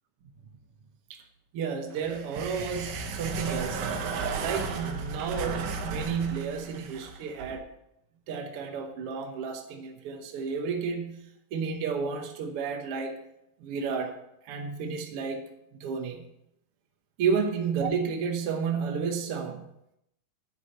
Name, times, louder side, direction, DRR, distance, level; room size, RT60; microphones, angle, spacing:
voice 1, 1.5-3.9 4.4-7.6 8.3-13.2 13.6-14.2 14.4-15.4 15.8-16.2 17.2-19.7, right 6 dB, 65° right, 4 dB, 1.5 m, -31 dB
sound 1, 2.0-7.6, right 4 dB, 85° right, 2.7 m, -34 dB
9.9 x 4.8 x 7.8 m, 0.80 s
omnidirectional pair, 3.9 m